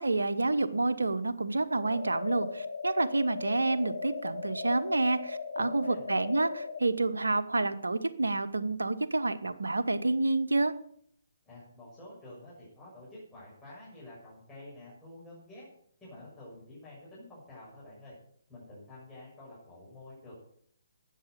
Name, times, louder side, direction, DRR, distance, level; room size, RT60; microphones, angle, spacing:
voice 1, 0.0-10.7, right 2 dB, 75° right, 12 dB, 1.1 m, -29 dB
sound 1, 1.8-6.8, left 4 dB, 65° left, 1.6 m, -37 dB
voice 2, 5.6-6.0 11.4-15.6 16.0-18.1 18.5-20.3, left 1 dB, 10° left, -10 dB, 6.6 m, -49 dB
13.5 x 9.3 x 6.9 m, 0.65 s
figure-of-eight pair, 135°, 0 cm